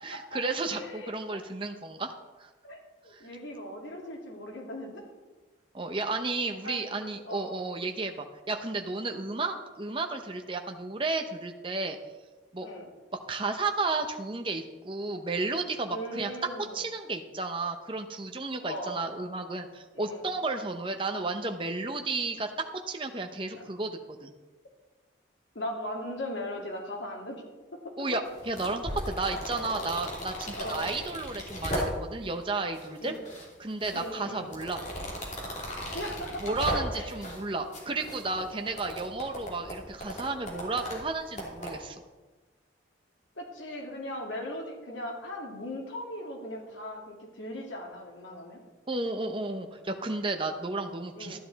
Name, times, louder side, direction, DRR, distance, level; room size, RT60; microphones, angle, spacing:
voice 1, 0.0-2.1 2.4-2.5 3.1-3.2 5.7-12.0 12.5-12.7 13.3-16.3 16.6-22.5 22.9-24.3 28.0-33.1 33.6-34.8 36.4-42.0 48.9-51.4, right 3 dB, 25° right, 5 dB, 0.7 m, -33 dB
voice 2, 0.7-1.1 2.6-5.1 6.6-6.9 7.2-7.6 12.6-12.9 15.9-16.8 18.6-19.1 19.9-20.2 25.5-27.4 27.7-27.9 30.6-30.9 33.0-33.2 33.9-34.5 35.9-37.3 43.4-48.6 51.1-51.4, left 1 dB, 80° left, 0 dB, 2.4 m, -38 dB
sound 1, 28.3-32.3 32.7-33.5 33.8-37.4 37.7-41.7, equal, 40° left, 2.8 m, -37 dB
13.0 x 10.0 x 4.0 m, 1.2 s
head